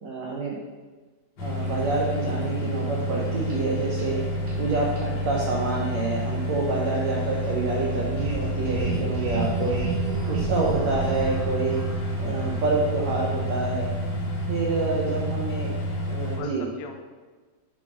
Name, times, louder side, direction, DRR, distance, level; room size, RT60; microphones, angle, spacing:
voice 1, 0.0-0.6 1.4-4.2 4.6-9.8 10.3-11.8 12.2-13.9 14.5-15.7 16.0-16.7, right 3 dB, 80° right, -3 dB, 1.6 m, -27 dB
sound 1, 1.4-16.4, equal, 60° left, 1.2 m, -29 dB
sound 2, 1.6-16.1, right 4 dB, 60° right, 1.9 m, -35 dB
voice 2, 7.1-7.6 12.3-12.7 14.9-15.2 16.1-17.0, left 6 dB, 80° left, 4 dB, 2.2 m, -41 dB
6.8 x 4.8 x 5.6 m, 1.4 s
omnidirectional pair, 4.2 m